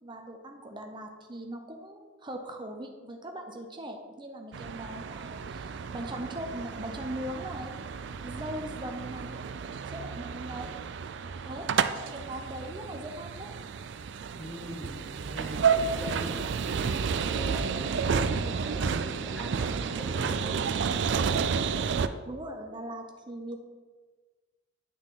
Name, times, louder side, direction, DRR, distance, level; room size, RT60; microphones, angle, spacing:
voice 1, 0.0-7.7 8.2-9.4 9.9-10.7 11.4-11.7 12.0-13.5 22.2-23.6, right 1 dB, 25° right, 3 dB, 0.7 m, -40 dB
sound 1, 4.5-22.1, right 6 dB, 55° right, 0.4 m, -31 dB
voice 2, 14.4-16.5 16.8-20.9, equal, 5° left, -2 dB, 1.4 m, -41 dB
9.3 x 6.3 x 3.8 m, 1.4 s
head